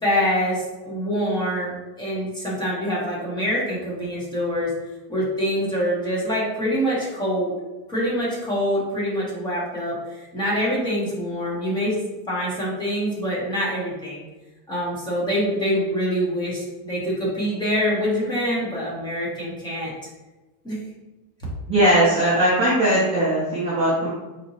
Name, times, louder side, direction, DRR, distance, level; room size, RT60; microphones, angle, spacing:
voice 1, 0.0-4.7 5.1-7.5 7.9-11.9 12.3-14.2 14.7-19.9 20.6-20.8, equal, 10° left, -6 dB, 0.8 m, -25 dB
voice 2, 21.7-24.1, right 1 dB, 15° right, -8 dB, 0.4 m, -19 dB
4.1 x 2.9 x 2.8 m, 1.1 s
cardioid pair, 165°, 49 cm